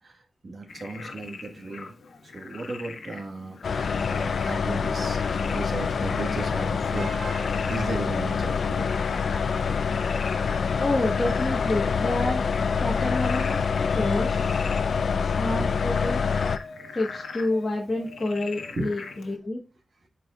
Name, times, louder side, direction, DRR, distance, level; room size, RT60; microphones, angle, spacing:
voice 1, 0.0-1.9 2.2-9.0 9.5-9.7 13.9-14.2 15.6-15.7 18.7-18.9, right 2 dB, 45° right, 3 dB, 1.6 m, -36 dB
Frog, 0.7-19.4, left 4 dB, 90° left, 1.3 m, -41 dB
sound 1, 3.6-16.6, left 5 dB, 65° left, 0.5 m, -26 dB
voice 2, 10.8-13.6 13.9-14.6 15.2-16.3 16.9-19.6, left 2 dB, 25° left, -2 dB, 1.4 m, -29 dB
11.5 x 4.6 x 2.4 m, 0.28 s
wide cardioid pair, 130°, 0 cm